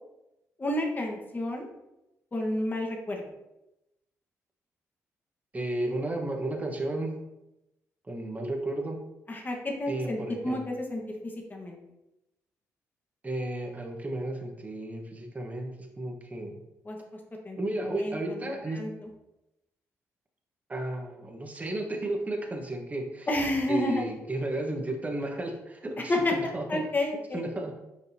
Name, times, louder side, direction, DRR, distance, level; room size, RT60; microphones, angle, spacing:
voice 1, 0.6-1.7 2.3-3.2 9.3-10.2 10.4-11.8 16.8-17.0 17.4-19.1 23.3-24.0 26.1-27.4, left 1 dB, 30° left, 1 dB, 1.6 m, -30 dB
voice 2, 5.5-7.1 8.1-9.0 9.9-10.6 13.2-16.6 17.6-18.8 20.7-23.3 23.7-26.2 26.5-26.6 27.3-27.7, right 1 dB, 25° right, 1 dB, 1.4 m, -33 dB
6.4 x 5.1 x 2.9 m, 0.91 s
cardioid pair, 70°, 6 cm